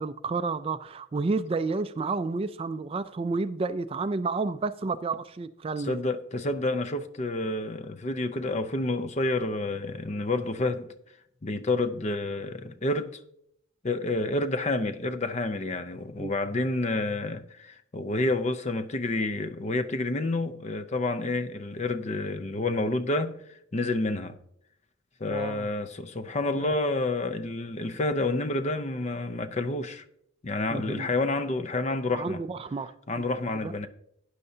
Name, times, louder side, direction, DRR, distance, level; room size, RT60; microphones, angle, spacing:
voice 1, 0.0-6.0 16.2-16.3 25.3-25.7 26.6-26.7 30.7-31.1 32.1-33.3 33.6-33.7, right 3 dB, 30° right, 0.3 m, -31 dB
voice 2, 5.8-10.9 11.4-13.2 13.8-23.3 23.7-24.4 25.2-30.0 30.4-32.4 33.1-33.9, left 2 dB, 35° left, 0.5 m, -29 dB
12.0 x 9.6 x 2.7 m
head